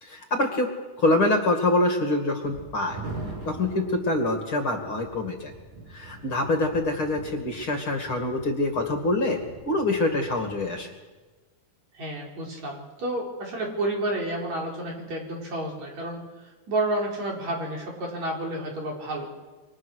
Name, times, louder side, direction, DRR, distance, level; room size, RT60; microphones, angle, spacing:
voice 1, 0.0-0.7 1.0-3.0 3.4-5.5 5.9-10.9, left 2 dB, 45° left, 4 dB, 2.9 m, -25 dB
sound 1, 2.4-10.8, right 3 dB, 75° right, 7.6 m, -43 dB
voice 2, 12.0-16.2 16.7-19.3, right 1 dB, 60° right, -1 dB, 6.0 m, -30 dB
27.5 x 24.5 x 6.5 m, 1.3 s
omnidirectional pair, 3.7 m